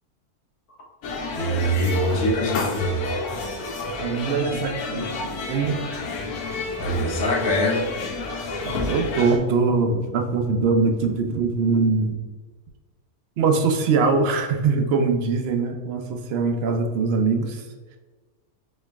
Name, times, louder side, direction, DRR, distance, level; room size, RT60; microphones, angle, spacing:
sound 1, 1.0-9.4, left 3 dB, 90° left, 1.2 m, -30 dB
voice 1, 1.3-3.1 6.8-7.8, equal, 45° left, -1 dB, 0.9 m, -23 dB
voice 2, 4.0-5.8 8.6-12.2 13.4-17.7, right 4 dB, 70° right, 5 dB, 0.6 m, -22 dB
4.3 x 3.1 x 3.4 m, 1.3 s
omnidirectional pair, 1.6 m